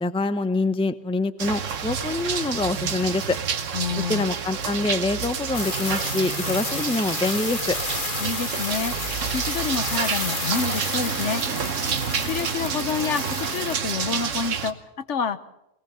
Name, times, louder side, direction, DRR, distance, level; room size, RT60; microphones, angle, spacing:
voice 1, 0.0-3.4 4.1-7.8, left 2 dB, 5° left, 13 dB, 0.6 m, -25 dB
sound 1, 1.4-14.7, right 6 dB, 85° right, 1.5 m, -29 dB
voice 2, 3.7-4.3 8.2-9.0 9.3-11.4 12.2-15.4, left 6 dB, 70° left, 12 dB, 1.3 m, -28 dB
sound 2, 5.5-13.7, left 3 dB, 40° left, 1.8 m, -32 dB
21.0 x 19.5 x 6.9 m, 0.85 s
omnidirectional pair, 1.3 m